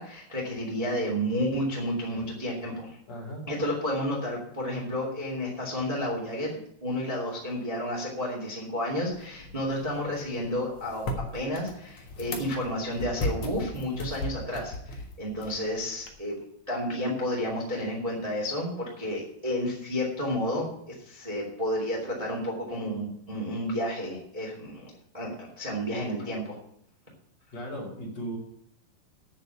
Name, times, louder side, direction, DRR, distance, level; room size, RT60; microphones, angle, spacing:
voice 1, 0.0-3.0 3.5-11.1 11.3-16.4 16.7-26.6, equal, 10° right, -2 dB, 2.2 m, -31 dB
voice 2, 3.1-3.5 27.5-28.4, equal, 40° left, -2 dB, 3.4 m, -36 dB
sound 1, 9.1-16.1, left 1 dB, 65° left, 1.3 m, -37 dB
9.0 x 7.1 x 8.2 m, 0.73 s
omnidirectional pair, 4.9 m